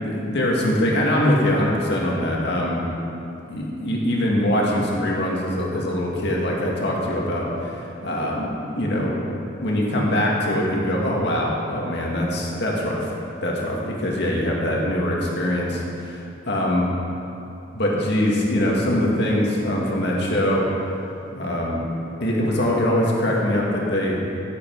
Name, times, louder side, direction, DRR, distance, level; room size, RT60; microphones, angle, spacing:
voice 1, 0.0-2.8 3.5-9.2 9.6-13.0 13.4-16.2 16.5-16.9 17.7-20.7 21.3-21.8 22.2-24.2, left 1 dB, 60° left, -3 dB, 2.2 m, -23 dB
16.5 x 8.3 x 4.8 m, 2.8 s
head